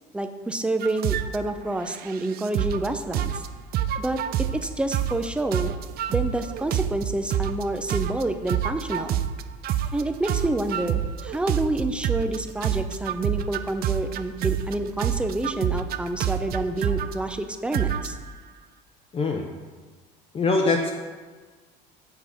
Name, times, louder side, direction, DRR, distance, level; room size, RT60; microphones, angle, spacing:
voice 1, 0.1-3.4 4.0-5.7 6.1-9.2 9.9-18.2, right 2 dB, 5° right, 7 dB, 0.6 m, -28 dB
sound 1, 0.8-1.4 1.9-2.9 3.1-3.5 3.7-4.7 4.9-5.3 5.5-7.6 7.9-12.4 12.6-14.7 15.0-17.1 17.7-18.3, right 10 dB, 55° right, 0.5 m, -27 dB
voice 2, 19.1-19.5 20.3-20.9, left 3 dB, 30° left, 1 dB, 0.8 m, -22 dB
7.3 x 6.0 x 5.0 m, 1.4 s
supercardioid pair, 110°, 19 cm